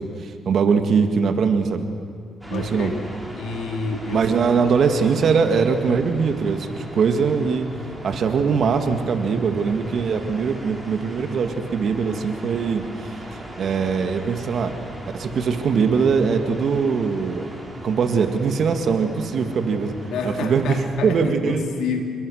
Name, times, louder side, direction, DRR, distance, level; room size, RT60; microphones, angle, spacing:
voice 1, 0.0-1.9 2.5-2.9 4.1-7.7 8.0-13.1 13.6-14.7 15.1-17.4 17.8-19.9 20.2-20.8 21.0-21.6, right 5 dB, 60° right, 7 dB, 2.0 m, -21 dB
voice 2, 0.6-1.1 2.5-3.0 3.3-4.3 20.1-22.0, left 5 dB, 80° left, 3 dB, 3.5 m, -29 dB
sound 1, 2.4-21.3, right 1 dB, 5° right, 5.4 m, -39 dB
28.5 x 21.5 x 6.5 m, 2.4 s
cardioid pair, 90°, 0 cm